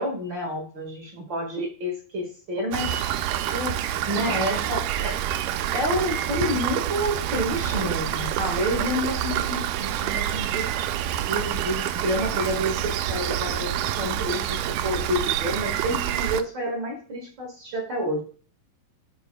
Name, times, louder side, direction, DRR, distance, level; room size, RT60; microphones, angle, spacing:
voice 1, 0.0-2.9 3.5-5.2 5.7-10.7 11.2-18.2, equal, 40° right, -1 dB, 1.8 m, -29 dB
Rain, 2.7-16.4, right 11 dB, 90° right, 1.8 m, -27 dB
13.5 x 5.0 x 2.3 m, 0.40 s
omnidirectional pair, 4.2 m